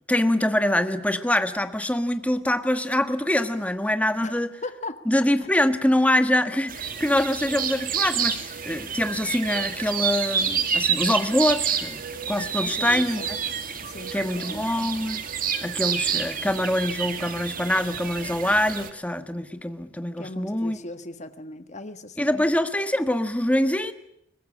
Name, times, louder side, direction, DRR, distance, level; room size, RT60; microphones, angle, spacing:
voice 1, 0.1-4.5 5.0-12.0 12.3-13.4 14.1-15.2 15.6-20.8 22.2-23.9, left 1 dB, 5° left, 9 dB, 1.4 m, -24 dB
voice 2, 4.2-5.0 5.4-5.5 12.6-13.3 13.8-14.7 20.2-22.4, left 2 dB, 35° left, 10 dB, 1.6 m, -38 dB
sound 1, 6.7-18.9, right 7 dB, 45° right, 2.2 m, -29 dB
23.0 x 20.5 x 9.7 m, 0.76 s
head